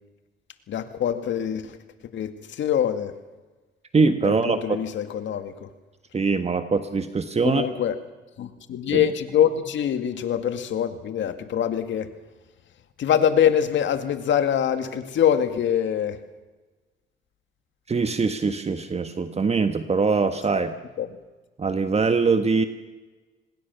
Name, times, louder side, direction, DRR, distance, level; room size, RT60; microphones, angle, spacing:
voice 1, 0.7-1.8 2.1-2.3 2.6-3.1 4.2-5.7 7.4-8.0 8.4-12.1 13.0-16.2 21.0-21.1, left 9 dB, 70° left, 9 dB, 2.2 m, -24 dB
voice 2, 3.9-4.8 6.1-7.6 8.9-9.1 17.9-20.7 21.6-22.6, right 4 dB, 30° right, 9 dB, 1.5 m, -22 dB
25.5 x 20.5 x 7.1 m, 1.2 s
cardioid pair, 90°, 20 cm